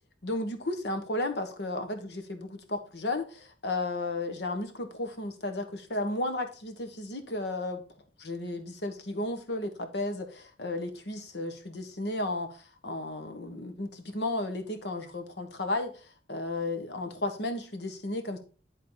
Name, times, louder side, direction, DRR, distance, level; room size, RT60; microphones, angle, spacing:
voice 1, 0.2-5.6 5.9-7.8 8.2-18.4, left 2 dB, 70° left, 1.2 m, -34 dB
10.5 x 3.7 x 4.0 m
head